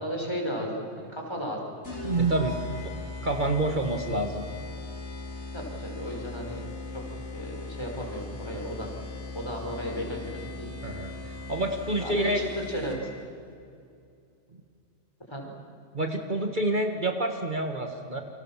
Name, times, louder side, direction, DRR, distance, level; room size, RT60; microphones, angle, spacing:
voice 1, 0.0-1.8 5.5-6.6 6.9-7.0 7.3-8.9 9.3-10.7 12.0-13.1 15.3-15.5, equal, 25° left, 0 dB, 5.5 m, -34 dB
sound 1, 1.8-13.2, left 3 dB, 90° left, 4.1 m, -39 dB
voice 2, 2.0-2.6 2.8-2.9 3.2-4.4 10.8-12.4 15.9-18.2, right 2 dB, 45° right, 4 dB, 1.9 m, -28 dB
30.0 x 26.0 x 7.5 m, 2.5 s
omnidirectional pair, 1.1 m